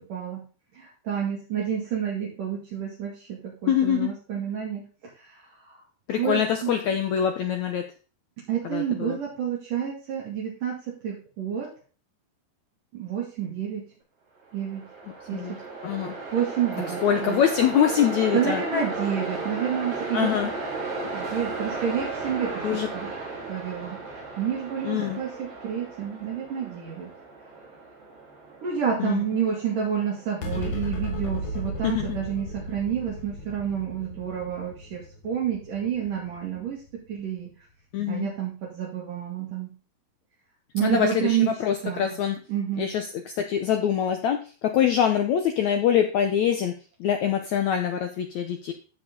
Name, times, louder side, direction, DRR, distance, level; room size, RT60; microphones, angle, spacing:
voice 1, 0.7-4.8 5.2-5.8 6.2-6.8 8.5-11.7 12.9-13.9 14.5-14.8 15.3-15.6 16.3-17.4 18.3-20.3 21.1-23.1 23.5-24.0 24.4-27.1 28.6-36.8 37.1-37.5 38.1-39.7 40.7-41.5 41.8-42.2 42.5-42.9, right 8 dB, 60° right, -4 dB, 3.9 m, -29 dB
voice 2, 3.7-4.1 6.1-7.8 8.7-9.2 15.3-15.6 15.8-16.1 17.0-18.8 20.1-20.5 22.6-22.9 24.8-25.2 29.0-29.2 31.8-32.2 37.9-38.3 40.8-42.4 42.8-43.1 43.4-46.7 47.0-48.7, left 9 dB, 85° left, 5 dB, 1.6 m, -24 dB
Train, 14.5-31.7, right 3 dB, 80° right, 6.7 m, -35 dB
sound 1, 30.4-37.1, equal, 60° left, 1.3 m, -35 dB
15.0 x 5.0 x 3.8 m, 0.36 s
omnidirectional pair, 4.5 m